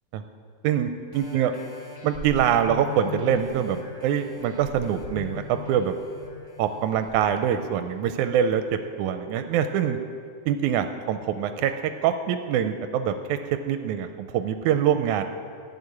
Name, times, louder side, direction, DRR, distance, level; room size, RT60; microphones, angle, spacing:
sound 1, 1.1-8.3 8.8-8.9, left 4 dB, 25° left, 2.5 m, -40 dB
voice 1, 1.1-1.5 2.0-5.9 6.6-8.6 9.0-10.0 10.5-13.4 13.7-15.2, right 9 dB, 90° right, 8 dB, 2.0 m, -24 dB
14.5 x 6.9 x 9.7 m, 2.3 s
omnidirectional pair, 3.4 m